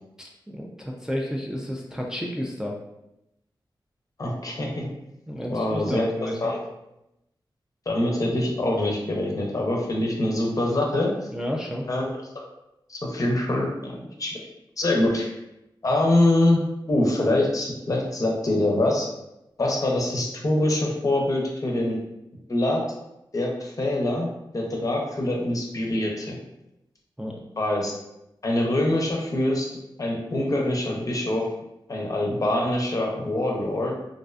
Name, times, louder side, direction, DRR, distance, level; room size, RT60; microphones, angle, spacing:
voice 1, 0.5-2.8 5.3-6.5 11.3-11.9 27.2-27.3, equal, 5° right, -2 dB, 0.3 m, -31 dB
voice 2, 4.2-4.8 5.5-6.1 6.4-6.6 7.9-11.1 11.9-12.1 12.9-14.3 14.8-15.3 15.8-16.6 16.9-19.1 19.6-22.0 22.5-22.9 23.3-24.3 24.5-26.4 27.6-27.9 28.4-29.7 30.0-31.5 31.9-34.0, left 1 dB, 45° left, -1 dB, 0.6 m, -24 dB
2.5 x 2.2 x 2.4 m, 0.88 s
wide cardioid pair, 75°, 8 cm